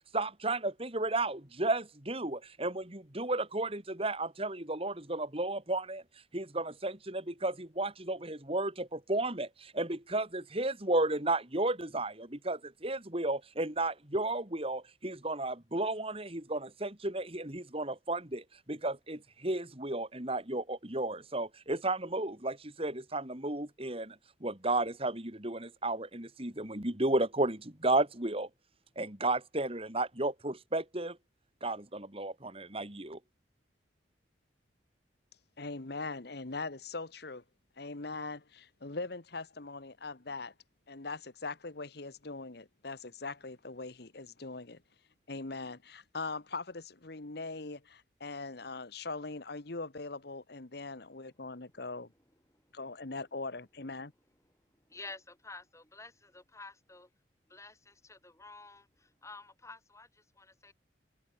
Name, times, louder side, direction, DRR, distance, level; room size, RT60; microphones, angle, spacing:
voice 1, 0.1-6.0 6.3-28.5 29.0-31.2 31.6-33.2, right 2 dB, 30° right, 3.1 m, -33 dB
voice 2, 35.6-37.4 37.8-40.5 40.9-44.8 45.3-52.1 52.7-54.1, left 3 dB, 55° left, 1.3 m, -41 dB
voice 3, 51.5-52.2 52.5-52.8 54.4-57.1 57.5-60.7, left 3 dB, 15° left, 6.1 m, -51 dB
head